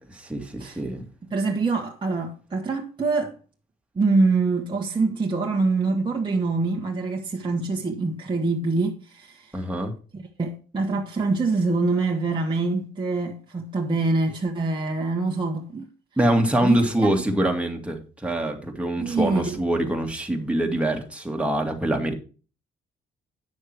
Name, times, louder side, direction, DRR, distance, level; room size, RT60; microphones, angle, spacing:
voice 1, 0.3-1.1 9.5-9.9 16.2-22.1, right 1 dB, 5° right, 2.3 m, -24 dB
voice 2, 1.2-3.3 3.9-9.6 10.1-15.9 16.6-17.1 19.0-19.6, right 3 dB, 25° right, 1.4 m, -25 dB
9.7 x 6.5 x 4.6 m
cardioid pair, 90°, 20 cm